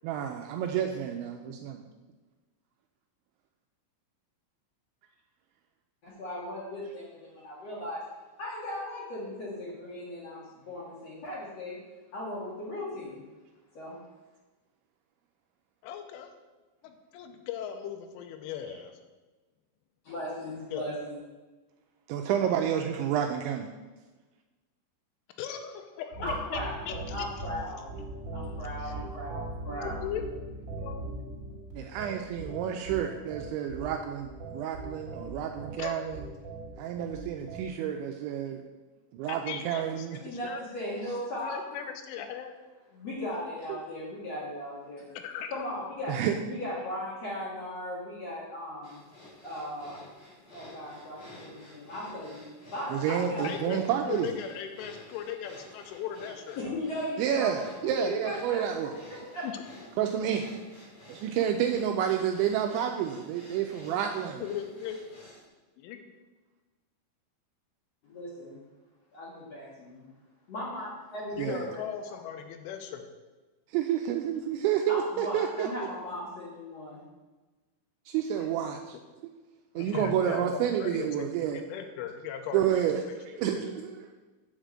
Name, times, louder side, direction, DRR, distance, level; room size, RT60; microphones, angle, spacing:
voice 1, 0.0-1.8 22.1-23.7 31.8-36.2 36.8-38.6 39.2-40.2 43.7-43.8 46.1-46.4 52.9-54.3 57.2-58.9 60.0-60.5 61.2-64.4 71.4-71.6 73.7-75.7 78.1-79.0 79.8-81.6 82.5-83.0 83.4-84.1, right 9 dB, 85° right, 4 dB, 2.7 m, -29 dB
voice 2, 6.0-8.0 8.4-11.8 12.1-13.2 13.7-14.0 20.0-21.2 26.2-27.9 28.3-30.0 40.2-41.6 42.9-45.0 45.5-46.2 46.5-49.0 49.4-50.1 50.5-52.4 52.7-53.9 56.6-57.6 58.0-58.6 59.3-59.4 68.0-68.6 69.1-70.0 70.5-71.7 72.0-72.2 74.9-77.0, left 1 dB, 55° left, -6 dB, 1.8 m, -37 dB
voice 3, 15.8-16.3 16.8-19.0 20.7-21.1 25.4-26.6 26.9-27.3 28.8-28.9 29.8-30.2 30.8-31.3 35.8-36.0 39.3-40.6 41.4-42.5 45.2-45.7 53.4-56.6 59.4-59.6 64.4-65.1 65.8-66.1 71.4-73.1 78.4-78.5 79.8-83.7, left 9 dB, 85° left, 6 dB, 3.1 m, -38 dB
sound 1, 26.1-37.7, right 2 dB, 30° right, 2.4 m, -40 dB
sound 2, 48.8-65.4, left 1 dB, 30° left, 2.0 m, -52 dB
8.1 x 5.1 x 7.5 m, 1.2 s
omnidirectional pair, 5.7 m